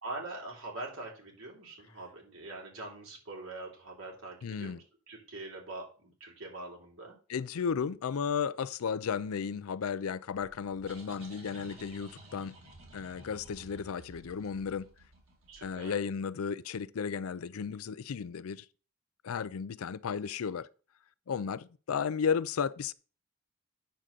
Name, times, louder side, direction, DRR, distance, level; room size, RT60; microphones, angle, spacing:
voice 1, 0.0-7.2 15.5-16.1, right 2 dB, 75° right, 3.3 m, -43 dB
voice 2, 4.4-4.8 7.3-12.5 12.9-14.9 15.6-18.6 19.2-20.7 21.3-22.9, left 6 dB, 85° left, 0.4 m, -34 dB
sound 1, 10.4-15.9, right 2 dB, 90° right, 3.2 m, -53 dB
8.9 x 3.7 x 6.6 m
head